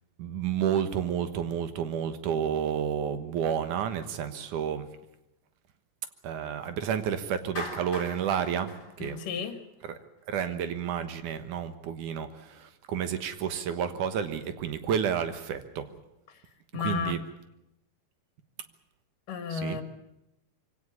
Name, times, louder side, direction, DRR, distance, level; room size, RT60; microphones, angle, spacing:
voice 1, 0.2-4.9 6.2-9.2 9.8-10.0 10.3-15.9 16.7-17.2 19.5-19.8, right 8 dB, 75° right, 10 dB, 2.7 m, -30 dB
Clapping, 7.6-9.9, left 2 dB, 30° left, 4.4 m, -41 dB
voice 2, 9.0-9.6 16.3-16.4 16.7-17.2 19.3-19.8, left 6 dB, 80° left, 7 dB, 3.5 m, -32 dB
24.0 x 17.0 x 8.7 m, 0.89 s
omnidirectional pair, 3.7 m